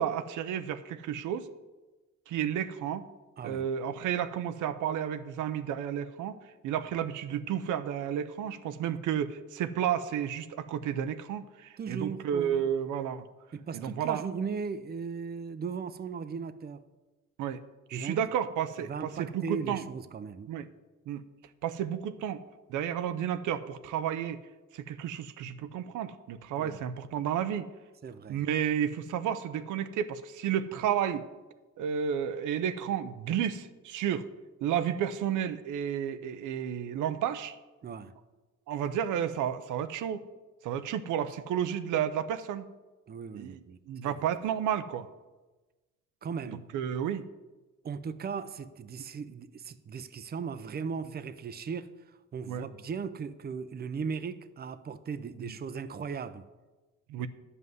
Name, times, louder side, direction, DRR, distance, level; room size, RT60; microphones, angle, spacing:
voice 1, 0.0-1.5 2.3-3.1 3.4-6.4 6.6-13.3 13.7-14.2 17.4-17.6 17.9-19.8 20.5-20.7 21.1-21.2 21.6-22.4 22.7-24.4 24.7-27.7 28.3-31.2 31.8-34.3 34.6-37.5 38.7-40.2 40.6-42.7 43.3-43.6 43.9-45.1 46.4-47.2 52.5-52.6 55.4-55.5 57.1-57.3, right 9 dB, 85° right, 0.7 m, -32 dB
voice 2, 3.4-3.7 11.8-12.7 13.5-16.9 17.9-18.2 18.9-20.5 26.6-26.8 28.0-28.4 37.8-38.1 43.1-43.8 44.0-44.1 46.2-46.6 47.8-51.9 52.3-56.5 57.2-57.3, right 5 dB, 30° right, 0.6 m, -37 dB
11.0 x 5.6 x 7.9 m
cardioid pair, 90°, 30 cm